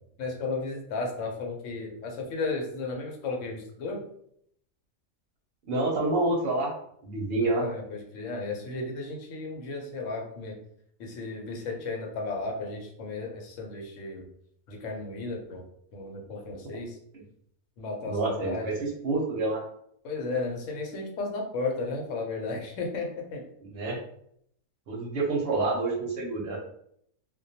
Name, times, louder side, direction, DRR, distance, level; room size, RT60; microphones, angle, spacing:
voice 1, 0.2-4.0 7.4-10.5 11.0-14.2 14.7-15.6 15.9-17.0 17.8-18.7 20.0-23.4, left 3 dB, 85° left, 2 dB, 1.0 m, -34 dB
voice 2, 5.7-6.7 7.0-7.7 16.6-16.8 18.0-19.6 23.6-24.0 24.9-26.6, right 2 dB, 65° right, -1 dB, 0.7 m, -28 dB
2.2 x 2.2 x 2.7 m, 0.69 s
omnidirectional pair, 1.3 m